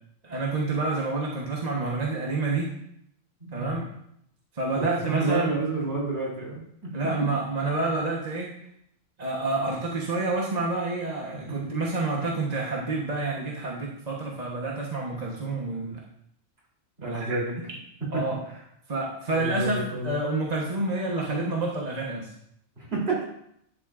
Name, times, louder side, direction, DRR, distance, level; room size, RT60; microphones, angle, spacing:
voice 1, 0.2-2.7 3.5-3.9 4.5-5.5 6.9-8.5 9.2-16.0 17.0-17.4 18.1-18.4 18.9-22.3, right 3 dB, 35° right, -3 dB, 1.2 m, -28 dB
voice 2, 3.4-3.8 4.8-6.9 11.5-11.6 17.0-17.5 18.1-18.2 19.3-20.2 22.8-23.2, right 3 dB, 55° right, -5 dB, 3.6 m, -29 dB
11.0 x 7.4 x 2.5 m, 0.73 s
omnidirectional pair, 1.3 m